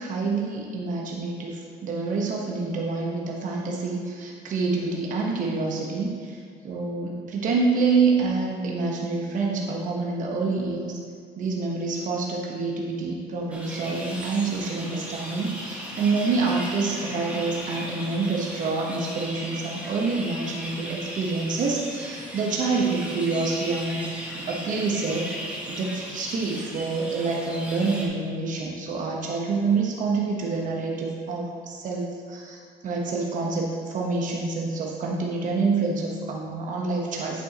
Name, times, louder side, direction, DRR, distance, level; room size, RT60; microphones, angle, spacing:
voice 1, 0.0-11.0 11.4-25.4 25.7-37.4, right 4 dB, 50° right, -2 dB, 1.1 m, -27 dB
sound 1, 13.5-28.1, equal, 10° right, 1.5 m, -37 dB
8.3 x 7.2 x 2.9 m, 2.1 s
cardioid pair, 110°, 17 cm